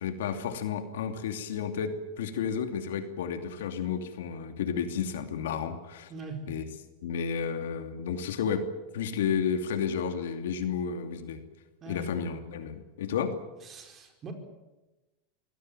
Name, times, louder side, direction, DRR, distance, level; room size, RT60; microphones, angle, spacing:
voice 1, 0.0-6.1 6.5-6.6 7.0-8.6 8.9-11.4 11.9-13.3, left 7 dB, 90° left, 7 dB, 2.7 m, -32 dB
voice 2, 6.1-6.4 11.8-12.1 13.6-14.3, right 1 dB, 30° right, 5 dB, 4.8 m, -41 dB
24.0 x 17.5 x 9.2 m, 1.1 s
supercardioid pair, 130°, 0 cm